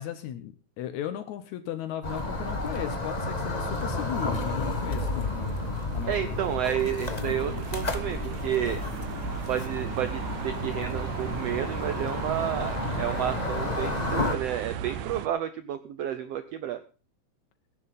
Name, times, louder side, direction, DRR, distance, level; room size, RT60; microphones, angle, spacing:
voice 1, 0.0-5.5 5.9-6.4, left 11 dB, 75° left, 10 dB, 2.2 m, -36 dB
sound 1, 2.0-14.4, left 3 dB, 50° left, 0.4 m, -32 dB
sound 2, 2.0-15.3, right 10 dB, 85° right, 2.3 m, -37 dB
voice 2, 6.1-8.8 9.5-16.8, right 10 dB, 70° right, 11 dB, 1.7 m, -31 dB
19.0 x 10.5 x 4.1 m, 0.35 s
omnidirectional pair, 3.4 m